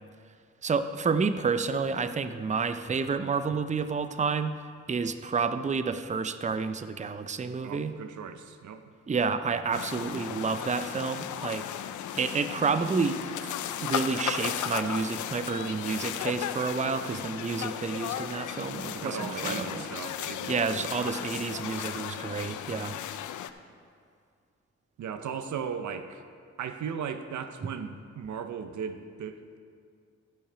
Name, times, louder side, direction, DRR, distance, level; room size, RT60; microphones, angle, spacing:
voice 1, 0.6-4.6 4.9-7.9 9.1-11.6 12.2-13.5 13.8-19.8 20.5-23.0, right 5 dB, 25° right, 11 dB, 0.5 m, -30 dB
voice 2, 7.6-8.9 18.7-21.6 25.0-26.2 26.6-29.6, right 7 dB, 75° right, 9 dB, 0.7 m, -37 dB
sound 1, 9.7-23.5, left 10 dB, 80° left, 0.5 m, -35 dB
13.5 x 5.7 x 5.0 m, 2.2 s
cardioid pair, 55°, 29 cm